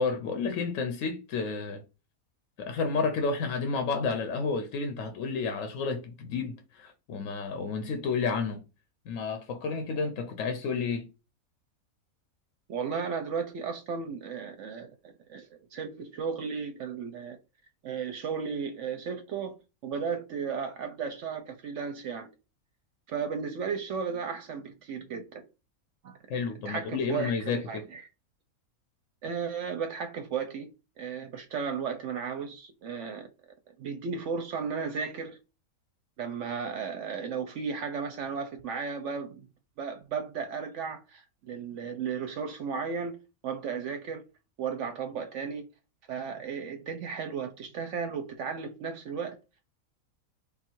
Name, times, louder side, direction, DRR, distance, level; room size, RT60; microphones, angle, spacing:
voice 1, 0.0-1.8 2.6-8.6 9.1-11.1 26.3-27.8, left 4 dB, 65° left, 1.0 m, -31 dB
voice 2, 12.7-17.4 17.8-19.5 19.8-22.3 23.1-25.4 26.0-26.2 26.6-28.1 29.2-30.7 31.0-33.3 33.8-35.4 36.2-39.5 39.8-43.2 43.4-44.2 44.6-45.6 46.1-49.4, right 6 dB, 65° right, 0.8 m, -34 dB
3.6 x 2.4 x 4.4 m
omnidirectional pair, 1.5 m